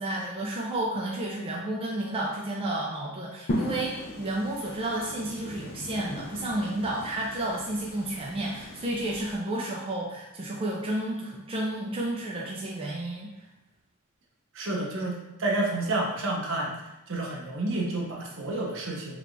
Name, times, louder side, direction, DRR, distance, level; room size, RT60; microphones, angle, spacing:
voice 1, 0.0-13.3, right 1 dB, 25° right, -3 dB, 0.4 m, -31 dB
sound 1, 3.5-9.4, equal, 50° left, 0.5 m, -37 dB
voice 2, 14.5-16.7 17.1-19.2, right 2 dB, 65° right, -1 dB, 0.7 m, -30 dB
3.3 x 3.3 x 2.5 m, 0.92 s
head